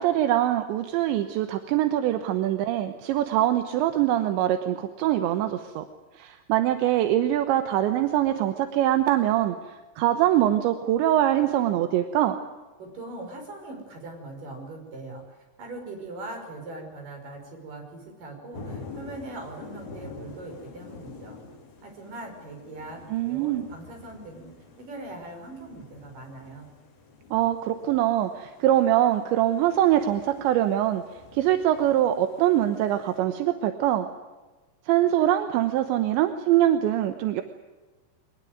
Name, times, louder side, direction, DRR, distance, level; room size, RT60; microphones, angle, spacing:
voice 1, 0.0-5.8 6.1-12.4 23.1-23.6 27.3-31.0 31.3-34.1 34.9-37.4, right 12 dB, 80° right, 8 dB, 3.4 m, -23 dB
voice 2, 12.8-21.4 21.8-26.7, right 2 dB, 50° right, 3 dB, 7.1 m, -41 dB
sound 1, 18.5-33.2, left 4 dB, 55° left, 5.3 m, -47 dB
22.5 x 20.0 x 9.4 m, 1.2 s
omnidirectional pair, 5.2 m